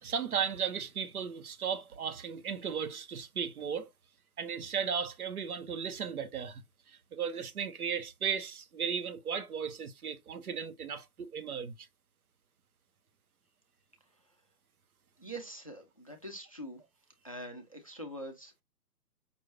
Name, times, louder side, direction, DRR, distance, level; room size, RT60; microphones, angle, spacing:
voice 1, 0.0-3.9 4.4-6.6 6.9-11.9, right 7 dB, 60° right, 0.9 m, -35 dB
voice 2, 15.2-16.8 17.2-18.5, right 1 dB, 25° left, 0.4 m, -44 dB
5.3 x 2.6 x 2.9 m
figure-of-eight pair, 145°, 50 cm